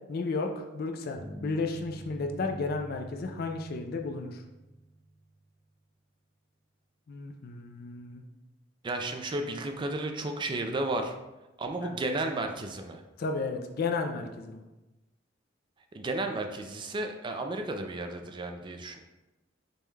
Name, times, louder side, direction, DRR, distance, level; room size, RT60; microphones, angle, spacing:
voice 1, 0.1-4.4 7.1-8.2 11.8-12.0 13.2-14.6, left 3 dB, 50° left, 4 dB, 0.3 m, -33 dB
sound 1, 1.1-5.4, right 1 dB, 75° left, 1.2 m, -45 dB
voice 2, 8.8-11.1 11.6-13.0 15.9-19.0, right 2 dB, 25° right, 5 dB, 0.3 m, -33 dB
5.2 x 2.2 x 3.2 m, 1.0 s
head